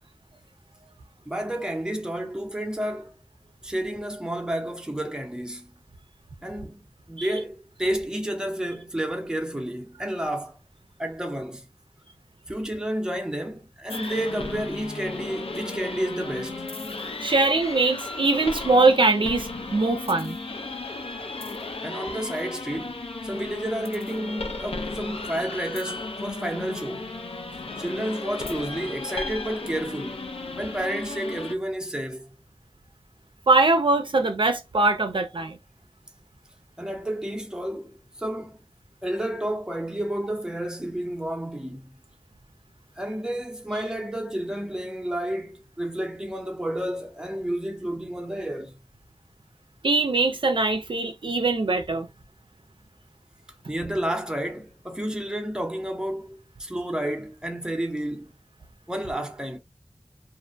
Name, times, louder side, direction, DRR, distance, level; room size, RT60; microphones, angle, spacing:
voice 1, 1.3-3.1 3.6-5.7 6.4-10.6 11.0-11.6 12.5-16.6 21.8-27.2 27.8-30.2 30.6-32.4 36.8-38.6 39.0-41.9 43.0-48.8 53.7-58.3 58.9-59.6, right 1 dB, 10° right, 0.7 m, -31 dB
sound 1, 13.9-31.5, left 3 dB, 80° left, 0.5 m, -35 dB
voice 2, 17.2-20.4 33.5-35.6 49.8-52.1, right 3 dB, 60° right, 0.4 m, -22 dB
2.5 x 2.1 x 2.5 m
wide cardioid pair, 50°, 10 cm